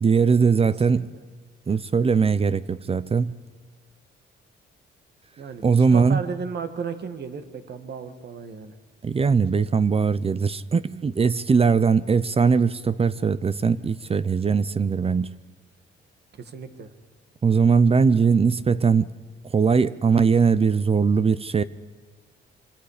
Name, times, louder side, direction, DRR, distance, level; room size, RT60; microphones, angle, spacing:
voice 1, 0.0-1.1 1.7-3.3 5.6-6.2 9.0-15.3 17.4-19.1 19.5-21.6, right 5 dB, 30° right, 0.7 m, -20 dB
voice 2, 5.4-8.7 16.3-16.9, right 5 dB, 55° right, 2.0 m, -34 dB
25.5 x 25.0 x 5.1 m
cardioid pair, 90°, 20 cm